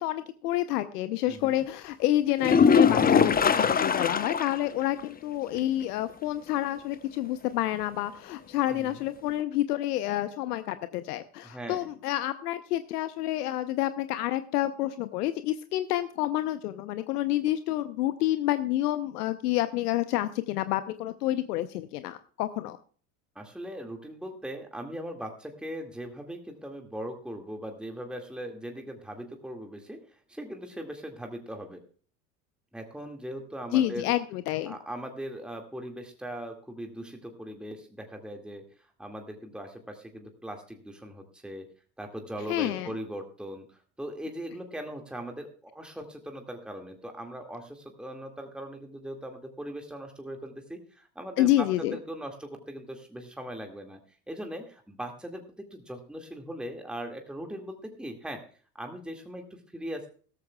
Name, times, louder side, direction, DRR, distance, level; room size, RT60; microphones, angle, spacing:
voice 1, 0.0-22.8 33.7-34.7 42.5-42.9 51.4-52.0, left 14 dB, 70° left, 11 dB, 0.9 m, -28 dB
voice 2, 1.3-1.6 8.7-9.0 11.4-11.9 23.4-31.8 32.7-34.1 34.7-41.7 42.0-54.0 54.3-55.4 55.7-58.4 58.7-60.1, equal, ahead, 3 dB, 2.1 m, -40 dB
sound 1, 2.4-4.7 5.0-5.1 5.5-5.6 9.4-9.5, left 6 dB, 20° left, 0.9 m, -21 dB
16.5 x 14.0 x 2.3 m, 0.43 s
hypercardioid pair, 75°, 48 cm